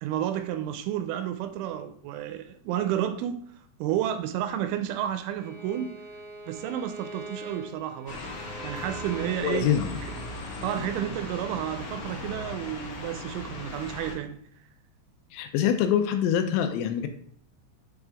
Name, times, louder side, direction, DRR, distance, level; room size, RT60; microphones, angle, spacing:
voice 1, 0.0-3.4 3.8-5.9 6.5-8.2 8.6-9.7 10.4-14.4, right 11 dB, 85° right, 2.8 m, -31 dB
Bowed string instrument, 5.4-10.4, right 1 dB, 65° right, 1.8 m, -44 dB
sound 1, 8.1-14.2, left 2 dB, 50° left, 2.3 m, -38 dB
voice 2, 9.4-10.0 10.8-10.9 15.3-17.1, left 9 dB, 85° left, 2.8 m, -25 dB
8.1 x 3.5 x 3.4 m
omnidirectional pair, 5.6 m